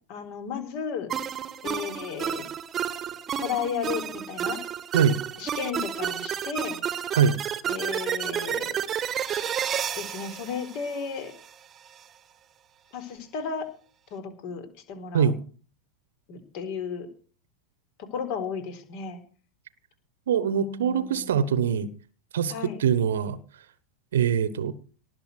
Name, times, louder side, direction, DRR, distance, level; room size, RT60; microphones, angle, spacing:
voice 1, 0.1-1.1 1.6-2.5 3.4-4.6 5.4-6.8 7.7-8.8 9.9-11.3 12.9-13.7 14.1-15.3 16.3-17.1 18.0-19.2 20.5-21.5 22.5-22.8, left 6 dB, 45° left, 4.1 m, -34 dB
sound 1, 1.1-11.5, right 9 dB, 25° right, 1.4 m, -31 dB
voice 2, 20.3-21.9 22.3-22.5 22.8-23.4 24.1-24.7, right 7 dB, 60° right, 1.2 m, -23 dB
19.0 x 7.1 x 8.2 m
figure-of-eight pair, 90°, 0 cm